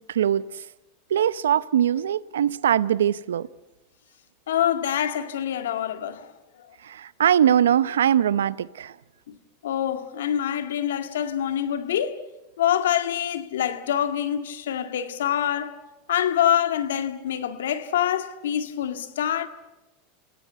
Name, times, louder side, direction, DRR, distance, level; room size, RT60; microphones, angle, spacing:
voice 1, 0.1-0.4 1.1-3.5 6.8-8.9, right 10 dB, 85° right, 0.7 m, -21 dB
voice 2, 4.5-6.3 9.3-9.4 9.6-12.2 12.6-15.8 16.1-19.5, left 10 dB, 80° left, 1.9 m, -25 dB
29.5 x 17.5 x 8.1 m
hypercardioid pair, 95°, 0 cm